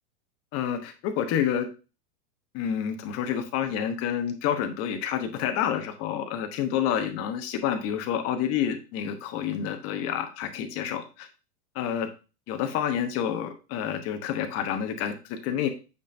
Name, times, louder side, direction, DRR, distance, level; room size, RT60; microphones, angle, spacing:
voice 1, 0.5-1.7 2.5-11.3 11.7-12.1 12.5-15.7, left 9 dB, 30° left, 7 dB, 0.9 m, -28 dB
8.4 x 5.1 x 2.6 m, 0.31 s
supercardioid pair, 150°, 47 cm